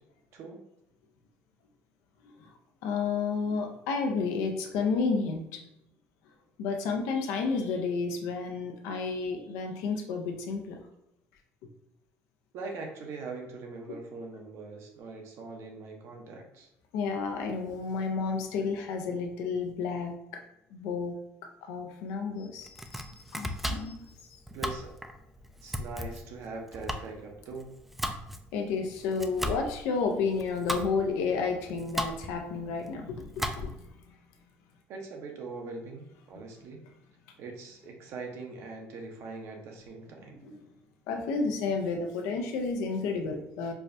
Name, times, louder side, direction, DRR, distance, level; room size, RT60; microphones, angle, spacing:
voice 1, 2.8-5.6 6.6-10.8 16.9-20.4 20.7-21.1 21.6-24.0 24.3-24.4 28.5-33.8 36.3-36.4 40.3-40.6 41.1-43.7, left 4 dB, 85° left, 3 dB, 0.6 m, -31 dB
voice 2, 12.5-16.7 24.5-25.0 25.6-27.7 34.9-36.8 37.4-40.4, right 3 dB, 65° right, 2 dB, 0.8 m, -42 dB
Domestic sounds home sounds, 22.6-33.9, equal, 5° right, 0.3 m, -37 dB
4.6 x 2.2 x 2.6 m, 0.84 s
cardioid pair, 105°, 5 cm